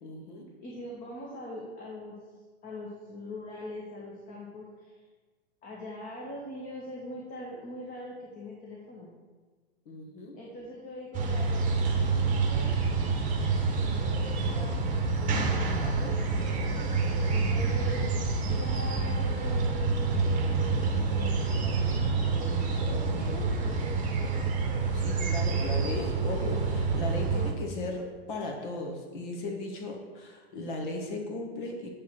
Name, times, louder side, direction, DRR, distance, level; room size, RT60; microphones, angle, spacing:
voice 1, 0.0-0.4 9.9-10.3 22.5-22.8 24.9-31.9, left 2 dB, 50° left, 1 dB, 1.4 m, -37 dB
voice 2, 0.6-2.2 2.6-5.1 5.6-9.1 10.3-12.8 13.4-15.1 15.7-16.8 17.3-18.0 18.6-22.1 22.6-24.5, left 1 dB, 25° left, -4 dB, 1.3 m, -42 dB
sound 1, 11.1-27.5, right 4 dB, 25° right, 1.1 m, -27 dB
8.1 x 3.4 x 5.8 m, 1.4 s
figure-of-eight pair, 105°, 33 cm